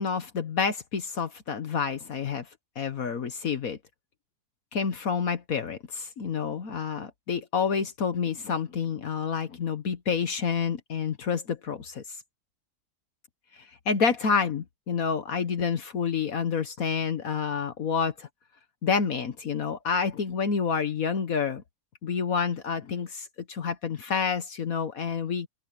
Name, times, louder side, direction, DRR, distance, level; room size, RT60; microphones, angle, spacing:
voice 1, 0.0-2.5 2.8-3.8 4.7-12.0 13.8-18.3 18.8-21.6 22.0-25.5, left 6 dB, 60° left, 1.6 m, -28 dB
open air
omnidirectional pair, 1.7 m